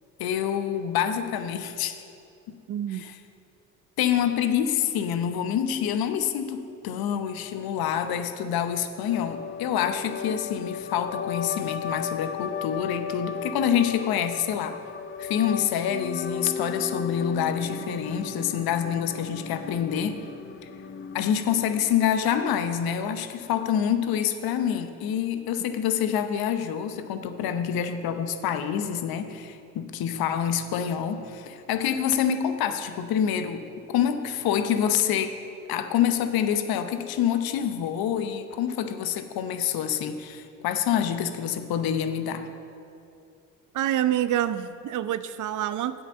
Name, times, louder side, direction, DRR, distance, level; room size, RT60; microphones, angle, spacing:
voice 1, 0.2-2.0 2.9-3.1 4.0-14.8 15.2-20.2 21.1-33.6 33.9-35.3 35.7-42.5, left 9 dB, 60° left, 9 dB, 0.9 m, -27 dB
voice 2, 2.7-3.0 43.7-46.0, right 11 dB, 45° right, 14 dB, 0.6 m, -27 dB
sound 1, 9.1-22.1, left 7 dB, 30° left, 0.6 m, -35 dB
8.0 x 5.7 x 7.6 m, 2.7 s
hypercardioid pair, 55°, 42 cm